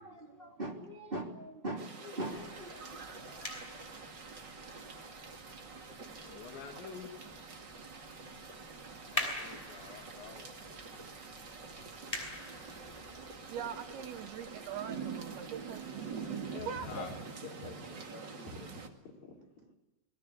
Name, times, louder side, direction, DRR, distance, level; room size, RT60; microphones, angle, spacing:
voice 1, 0.0-3.0, right 1 dB, 15° right, 2 dB, 2.1 m, -41 dB
sound 1, 1.8-18.9, right 5 dB, 55° right, 1.2 m, -46 dB
sound 2, 2.3-16.5, left 1 dB, 5° left, 4.7 m, -46 dB
voice 2, 3.1-3.9 8.1-8.5 11.7-11.9 16.9-17.0 17.4-18.8 19.3-19.4, left 1 dB, 50° left, 0 dB, 6.1 m, -48 dB
voice 3, 6.2-7.1 9.0-10.6 16.4-17.1, left 7 dB, 70° left, 2 dB, 4.3 m, -47 dB
voice 4, 13.5-16.0 16.3-16.9, right 8 dB, 75° right, 9 dB, 2.4 m, -42 dB
28.0 x 20.0 x 8.3 m, 0.97 s
omnidirectional pair, 5.6 m